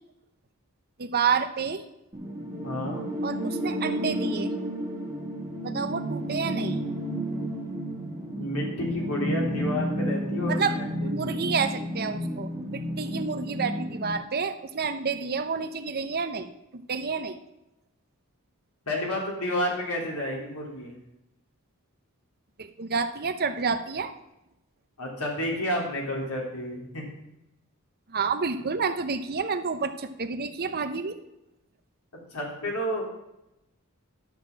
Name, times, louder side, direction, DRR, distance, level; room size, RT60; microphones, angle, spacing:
voice 1, 1.0-1.8 3.2-4.5 5.6-6.8 10.5-10.8 11.0-17.4 22.6-24.1 28.1-31.2, right 5 dB, 45° right, 9 dB, 0.8 m, -29 dB
sound 1, 2.1-14.1, equal, 15° right, 2.1 m, -31 dB
voice 2, 2.6-3.1 8.3-11.5 18.9-20.9 25.0-27.1 32.3-33.0, equal, 85° left, -2 dB, 3.5 m, -31 dB
12.0 x 6.6 x 6.1 m, 0.89 s
head